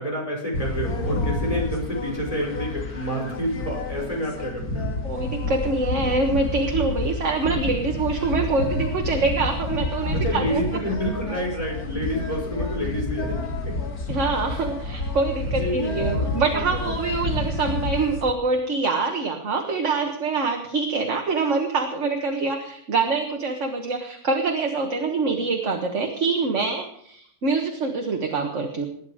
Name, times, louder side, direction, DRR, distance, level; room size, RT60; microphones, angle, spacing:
voice 1, 0.0-4.9 10.1-13.8 15.5-17.0, equal, 25° left, -1 dB, 5.5 m, -29 dB
sound 1, 0.5-18.3, left 2 dB, 85° left, 2.4 m, -29 dB
voice 2, 5.0-10.6 14.1-28.9, right 3 dB, 55° right, 3 dB, 1.8 m, -25 dB
19.5 x 10.0 x 5.0 m, 0.67 s
omnidirectional pair, 1.5 m